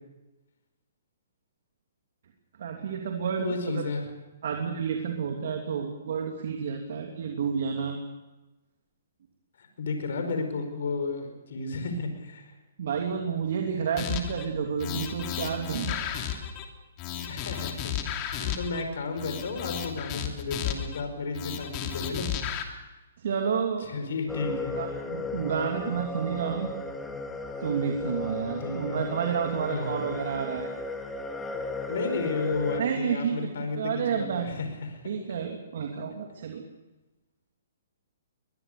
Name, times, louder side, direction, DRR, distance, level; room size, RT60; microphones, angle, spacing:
voice 1, 2.6-3.8 4.4-8.0 12.8-16.2 23.2-23.9 24.8-26.7 27.6-30.7 32.8-33.5 33.7-34.5 35.0-36.6, right 6 dB, 65° right, 2 dB, 2.9 m, -30 dB
voice 2, 3.4-4.1 9.6-12.5 17.3-22.3 23.9-24.7 28.6-29.0 29.7-30.0 31.9-33.8 34.1-34.9, left 3 dB, 70° left, 6 dB, 5.2 m, -33 dB
sound 1, 14.0-14.5 14.8-16.7 17.0-18.8 19.2-21.0 21.3-22.6, left 10 dB, 30° left, 2.9 m, -33 dB
sound 2, 24.3-32.8, left 3 dB, 10° left, 2.0 m, -35 dB
22.0 x 21.5 x 6.7 m, 1.1 s
hypercardioid pair, 145°, 0 cm